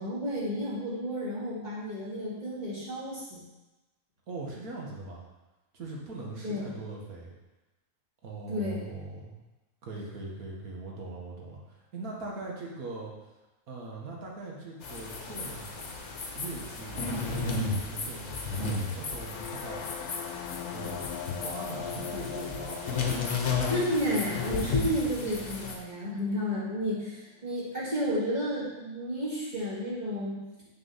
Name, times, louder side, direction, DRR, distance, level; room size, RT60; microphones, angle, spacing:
voice 1, 0.0-3.4 6.4-6.7 8.5-8.8 23.7-30.4, equal, 30° right, -7 dB, 2.3 m, -32 dB
voice 2, 4.3-5.2 5.7-7.3 8.2-9.3 9.8-13.1 13.7-15.9 16.3-19.8 20.7-21.1 21.3-23.6, right 3 dB, 75° right, -2 dB, 1.9 m, -41 dB
sound 1, 14.8-25.7, left 4 dB, 55° left, 1.2 m, -33 dB
sound 2, 19.1-27.0, left 9 dB, 80° left, 1.1 m, -41 dB
6.6 x 4.6 x 5.6 m, 1.1 s
omnidirectional pair, 1.6 m